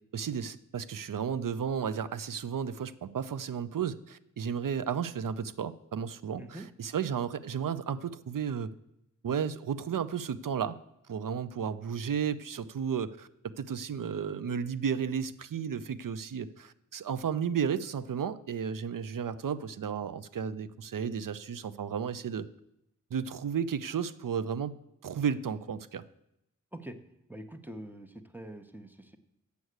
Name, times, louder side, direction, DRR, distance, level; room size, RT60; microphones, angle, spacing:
voice 1, 0.1-8.7 9.2-10.8 11.1-13.3 13.6-22.5 23.1-24.8 25.0-26.0, right 7 dB, 80° right, 15 dB, 0.6 m, -33 dB
voice 2, 6.4-6.7 26.7-27.0 27.3-29.2, right 1 dB, 5° right, 7 dB, 0.9 m, -44 dB
8.4 x 6.4 x 7.9 m, 0.82 s
wide cardioid pair, 75°, 32 cm